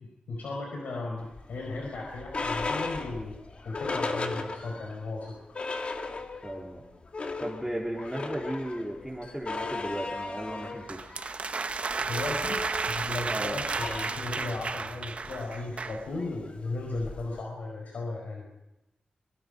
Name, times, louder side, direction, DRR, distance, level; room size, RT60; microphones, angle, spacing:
voice 1, 0.0-3.4 3.6-5.3 12.0-18.5, left 2 dB, 90° left, 0 dB, 4.9 m, -36 dB
sound 1, 1.3-5.0 5.3-5.4 5.5-6.6 6.9-17.4, left 3 dB, 45° left, 2.6 m, -37 dB
voice 2, 6.4-6.8 7.4-11.1 13.3-13.6, equal, 5° right, -4 dB, 3.7 m, -35 dB
sound 2, 10.9-16.1, right 4 dB, 50° right, 0.9 m, -33 dB
24.5 x 24.0 x 5.2 m, 0.93 s
wide cardioid pair, 90°, 3 cm